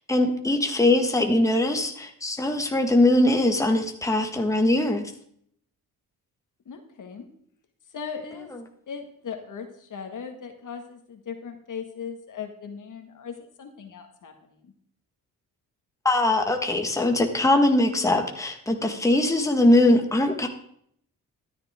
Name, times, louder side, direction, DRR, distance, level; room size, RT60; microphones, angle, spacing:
voice 1, 0.1-5.0 16.0-20.5, left 1 dB, 10° left, 3 dB, 1.6 m, -21 dB
voice 2, 6.7-7.3 7.9-8.5 8.9-14.7, left 6 dB, 60° left, 5 dB, 1.9 m, -38 dB
13.0 x 10.5 x 3.7 m, 0.66 s
cardioid pair, 85°, 35 cm